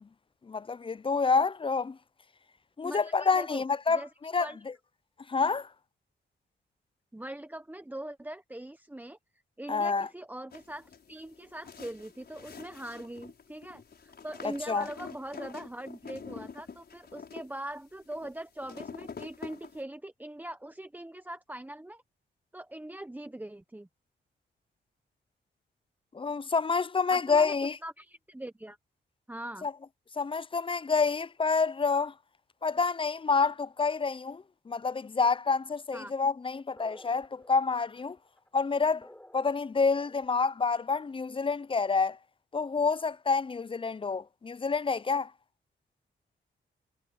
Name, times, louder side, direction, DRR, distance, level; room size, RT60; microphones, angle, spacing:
voice 1, 0.5-2.0 2.8-4.5 5.3-5.7 9.7-10.1 14.7-14.9 26.1-27.8 29.6-29.7 30.2-32.1 32.6-38.2 38.5-39.1 39.3-42.2 42.5-45.3, left 4 dB, 25° left, 0.5 m, -28 dB
voice 2, 2.8-4.1 4.4-4.6 7.1-9.2 9.6-22.0 22.5-23.9 27.1-27.6 27.8-28.8 29.3-29.7 35.9-36.1, right 1 dB, 10° right, 0.9 m, -42 dB
sound 1, 10.5-19.8, left 6 dB, 55° left, 5.7 m, -47 dB
sound 2, 36.7-40.5, left 1 dB, 10° left, 6.8 m, -53 dB
cardioid pair, 75°, 19 cm